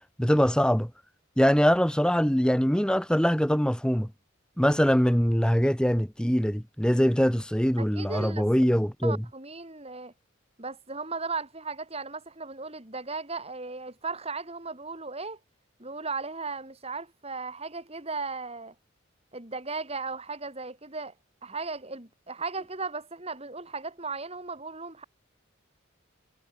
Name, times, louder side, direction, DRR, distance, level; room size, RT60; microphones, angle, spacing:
voice 1, 0.2-0.9 1.4-4.1 4.6-9.2, equal, 5° left, 1.7 m, -23 dB
voice 2, 7.8-8.5 9.0-10.1 10.6-15.4 15.8-18.7 19.3-21.1 21.4-25.0, right 4 dB, 30° right, 4.5 m, -36 dB
head